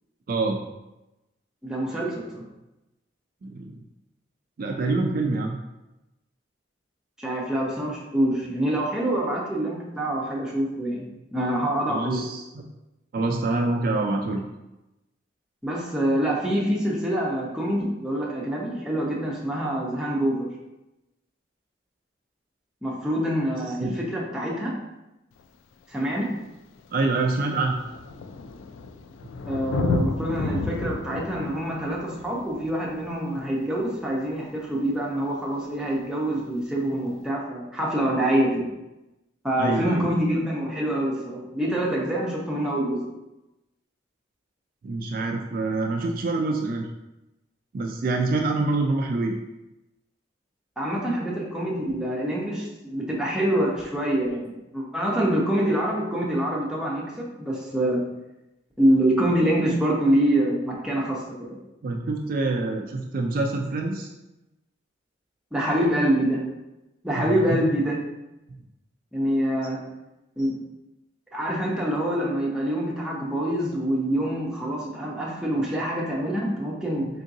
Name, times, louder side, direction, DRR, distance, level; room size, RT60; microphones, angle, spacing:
voice 1, 0.3-0.6 3.4-3.8 4.6-5.6 11.9-12.6 13.1-14.5 23.8-24.0 26.9-27.8 29.2-29.3 39.6-40.0 44.8-46.9 47.7-49.3 61.8-64.1 67.2-67.7, right 3 dB, 45° right, 2 dB, 0.3 m, -26 dB
voice 2, 1.6-2.4 7.2-12.2 15.6-20.5 22.8-24.7 25.9-26.3 29.4-38.7 39.4-43.0 50.8-54.4 54.7-58.0 58.8-61.6 65.5-66.4 67.0-68.0 69.1-69.8 70.4-70.6 71.3-77.1, right 1 dB, 5° right, -4 dB, 0.6 m, -25 dB
Thunder, 25.4-25.5 26.4-26.5 26.8-34.1 35.8-35.9, left 4 dB, 80° left, 0.3 m, -32 dB
3.8 x 3.6 x 2.7 m, 0.96 s
head